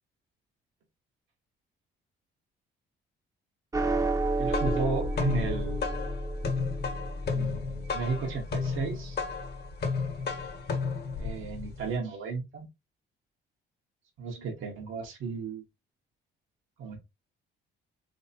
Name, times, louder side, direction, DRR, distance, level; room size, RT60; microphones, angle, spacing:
sound 1, 3.7-10.3, right 2 dB, 15° right, 0.6 m, -32 dB
sound 2, 4.2-11.9, left 5 dB, 55° left, 1.0 m, -33 dB
voice 1, 4.4-6.0 7.3-9.2 11.2-12.7 14.2-15.6 16.8-17.0, right 4 dB, 85° right, 1.4 m, -34 dB
3.3 x 3.3 x 2.7 m
cardioid pair, 90°, 20 cm